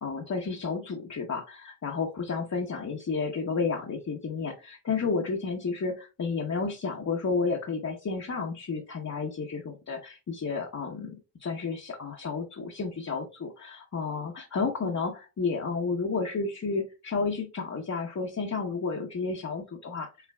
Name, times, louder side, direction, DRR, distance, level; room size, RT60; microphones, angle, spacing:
voice 1, 0.0-20.1, left 4 dB, 40° left, 1 dB, 0.9 m, -31 dB
5.7 x 3.2 x 2.3 m, 0.29 s
cardioid pair, 75°, 40 cm